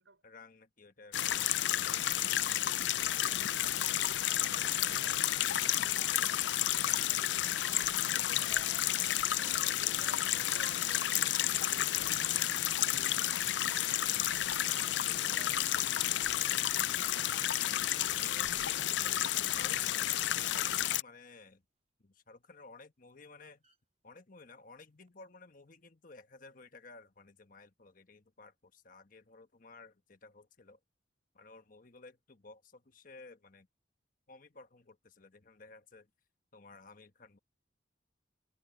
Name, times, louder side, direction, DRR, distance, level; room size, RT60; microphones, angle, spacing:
voice 1, 0.2-1.9 14.3-15.7 18.1-21.6 22.0-23.6 24.0-30.8 31.3-33.7 34.3-36.1 36.5-37.4, left 3 dB, 45° left, 1.3 m, -55 dB
sound 1, 1.1-21.0, left 12 dB, 70° left, 0.5 m, -31 dB
voice 2, 3.3-7.5 8.0-9.0 9.6-13.7 15.0-15.7, right 3 dB, 90° right, 5.0 m, -56 dB
sound 2, 8.0-13.3, equal, 5° left, 0.9 m, -57 dB
sound 3, 20.4-20.9 22.5-22.8 23.6-23.8 24.8-25.1, right 5 dB, 35° right, 4.8 m, -68 dB
head